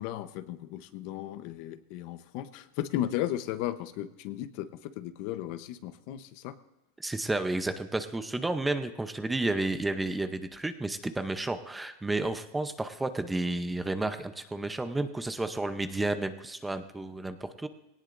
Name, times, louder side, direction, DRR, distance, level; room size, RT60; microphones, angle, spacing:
voice 1, 0.0-6.5, left 13 dB, 50° left, 11 dB, 0.8 m, -35 dB
voice 2, 7.0-17.7, right 2 dB, 5° right, 9 dB, 0.7 m, -31 dB
19.5 x 18.0 x 2.6 m, 0.99 s
supercardioid pair, 150°, 0 cm